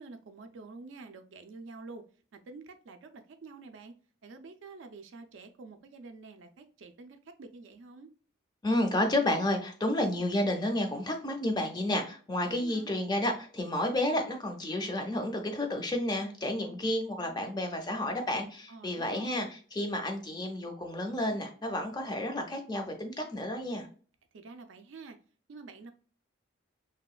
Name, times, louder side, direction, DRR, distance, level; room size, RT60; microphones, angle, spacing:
voice 1, 0.0-2.0 2.3-3.9 4.2-8.1 12.5-12.9 18.7-19.5 24.3-25.2 25.5-25.9, right 3 dB, 75° right, 0.4 m, -48 dB
voice 2, 8.6-23.9, left 1 dB, 20° left, 0.4 m, -31 dB
2.8 x 2.2 x 2.3 m
head